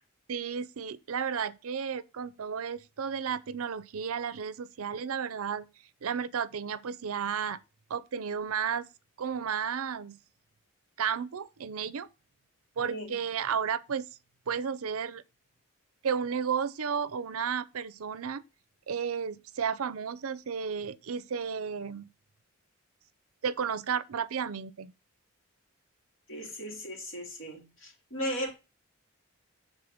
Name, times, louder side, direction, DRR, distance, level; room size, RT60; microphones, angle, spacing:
voice 1, 0.3-5.7 6.0-7.6 7.9-8.9 9.2-10.2 11.0-12.1 12.8-14.0 14.5-15.2 16.0-18.4 18.9-22.1 23.4-24.9, right 7 dB, 75° right, 0.5 m, -33 dB
voice 2, 12.8-13.1 26.3-28.5, equal, 65° left, 2.5 m, -37 dB
7.5 x 3.7 x 4.9 m
head